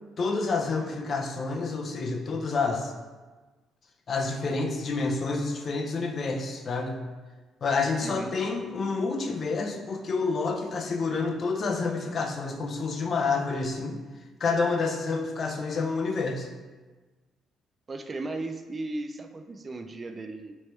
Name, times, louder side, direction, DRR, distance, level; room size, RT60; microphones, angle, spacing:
voice 1, 0.2-2.9 4.1-7.0 7.6-14.0 14.4-16.5, left 4 dB, 50° left, 3 dB, 0.5 m, -28 dB
voice 2, 8.0-8.4 17.9-20.6, right 2 dB, 35° right, 6 dB, 0.3 m, -36 dB
3.1 x 3.1 x 3.1 m, 1.3 s
supercardioid pair, 55°, 0 cm